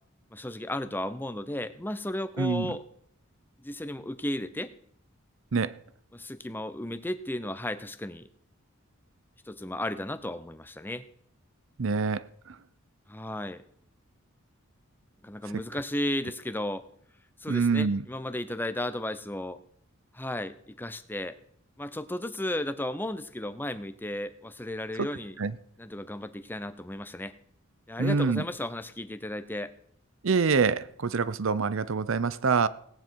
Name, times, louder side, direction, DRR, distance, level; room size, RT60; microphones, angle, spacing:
voice 1, 0.3-2.8 3.6-4.7 6.1-8.3 9.5-11.0 13.1-13.6 15.2-16.8 17.4-19.6 20.1-21.4 21.8-25.4 25.8-27.4 27.9-29.7, left 1 dB, 10° left, 0.6 m, -34 dB
voice 2, 2.4-2.7 5.5-5.8 11.8-12.6 17.5-18.0 25.0-25.1 25.4-25.5 28.0-28.4 30.2-32.7, right 5 dB, 65° right, 0.6 m, -26 dB
17.5 x 9.5 x 4.6 m
head